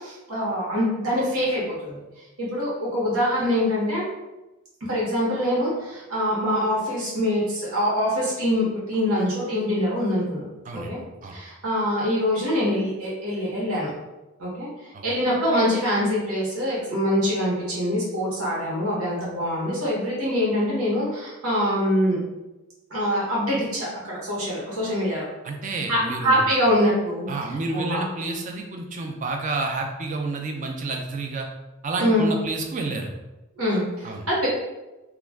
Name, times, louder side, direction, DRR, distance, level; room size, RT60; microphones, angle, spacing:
voice 1, 0.0-2.0 2.4-4.0 4.9-10.4 10.7-11.0 11.3-13.9 14.4-14.7 15.0-22.2 22.9-25.3 25.9-27.3 27.7-28.0 32.0-32.3 33.6-34.5, equal, 85° right, -6 dB, 1.0 m, -24 dB
voice 2, 25.4-26.4 27.3-31.5 31.8-33.1 34.0-34.3, right 3 dB, 35° right, 2 dB, 0.4 m, -30 dB
2.3 x 2.2 x 3.3 m, 1.0 s
head